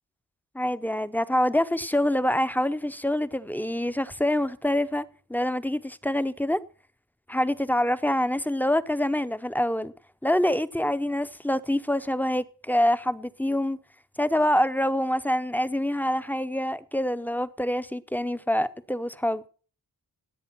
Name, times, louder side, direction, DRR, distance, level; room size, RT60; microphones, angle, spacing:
voice 1, 0.5-5.0 5.3-6.6 7.3-9.9 10.2-13.8 14.2-19.4, left 1 dB, 5° left, 0.6 m, -26 dB
16.5 x 8.6 x 5.9 m
wide cardioid pair, 125°, 38 cm